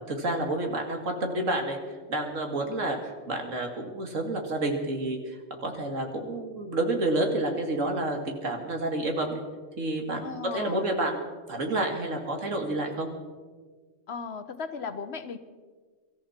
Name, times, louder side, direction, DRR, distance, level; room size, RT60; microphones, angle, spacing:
voice 1, 0.1-1.8 2.1-5.2 5.6-9.4 9.8-11.2 11.5-13.1, right 2 dB, 85° right, 3 dB, 2.6 m, -29 dB
voice 2, 10.2-10.9 14.1-15.4, left 5 dB, 60° left, 11 dB, 1.1 m, -36 dB
24.0 x 14.0 x 4.4 m, 1.4 s
omnidirectional pair, 1.3 m